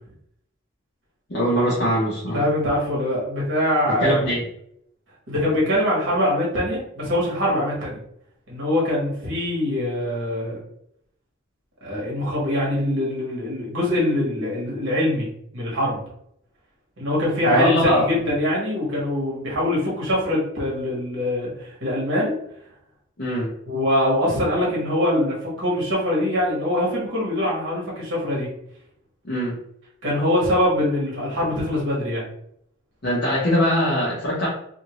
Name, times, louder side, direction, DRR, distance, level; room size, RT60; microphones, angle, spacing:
voice 1, 1.3-2.4 4.0-4.4 17.4-18.0 23.2-23.5 29.2-29.6 33.0-34.5, equal, 50° left, -7 dB, 0.8 m, -22 dB
voice 2, 2.3-4.2 5.3-8.0 8.5-10.6 11.8-16.0 17.0-22.3 23.7-28.5 30.0-32.2, left 1 dB, 60° right, -5 dB, 1.3 m, -23 dB
2.7 x 2.6 x 3.0 m, 0.72 s
head